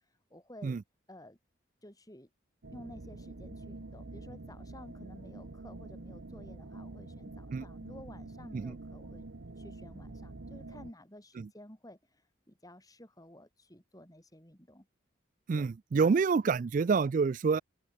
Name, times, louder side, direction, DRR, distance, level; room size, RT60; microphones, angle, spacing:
voice 1, 0.3-0.8 1.1-1.4 1.8-2.3 2.7-9.3 9.6-12.2 12.5-14.9 15.5-15.7, left 1 dB, 20° left, 5.8 m, -52 dB
sound 1, 2.6-10.9, right 2 dB, 70° right, 1.0 m, -46 dB
voice 2, 15.5-17.6, right 5 dB, 40° right, 0.3 m, -27 dB
open air
head